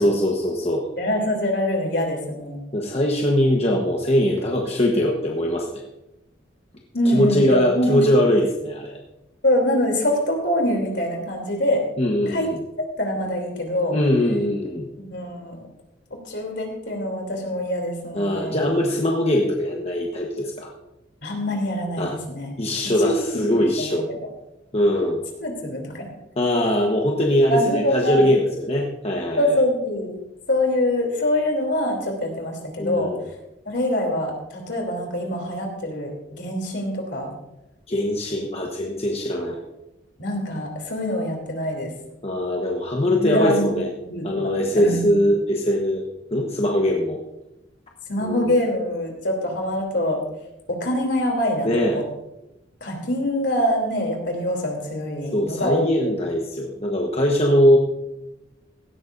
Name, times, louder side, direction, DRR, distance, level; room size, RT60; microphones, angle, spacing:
voice 1, 0.0-0.9 2.7-5.7 7.1-9.0 12.0-12.6 13.9-14.9 18.1-20.7 22.0-22.2 22.6-24.1 24.7-25.2 26.4-29.5 32.8-33.2 37.9-39.6 42.2-43.9 44.2-46.0 46.3-47.2 48.2-48.5 51.6-52.0 55.3-57.8, left 1 dB, 35° left, 0 dB, 1.1 m, -21 dB
voice 2, 1.0-2.6 6.9-8.0 9.4-11.9 12.3-14.0 15.0-15.7 16.1-18.6 21.2-22.5 23.0-23.4 23.8-24.2 25.4-26.1 27.5-28.2 29.4-30.1 30.5-33.1 33.6-37.3 40.2-41.9 43.2-43.7 44.0-45.1 48.1-50.2 50.7-52.0 52.8-56.1, left 1 dB, 65° left, 2 dB, 3.2 m, -24 dB
16.5 x 13.0 x 2.6 m, 0.92 s
head